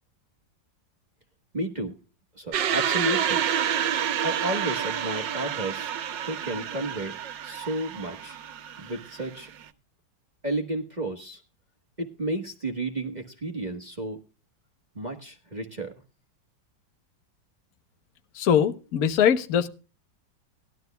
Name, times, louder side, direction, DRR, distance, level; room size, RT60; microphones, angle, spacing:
voice 1, 1.5-1.9 2.4-3.4 4.2-5.9 6.2-7.1 7.4-8.4 8.8-9.5 10.4-11.4 12.0-14.2 14.9-15.9, right 1 dB, 25° right, 4 dB, 1.2 m, -32 dB
sound 1, 2.5-9.6, right 9 dB, 80° right, 1.6 m, -29 dB
voice 2, 18.3-19.7, left 8 dB, 55° left, 10 dB, 1.3 m, -22 dB
19.0 x 12.5 x 2.3 m, 0.34 s
omnidirectional pair, 2.0 m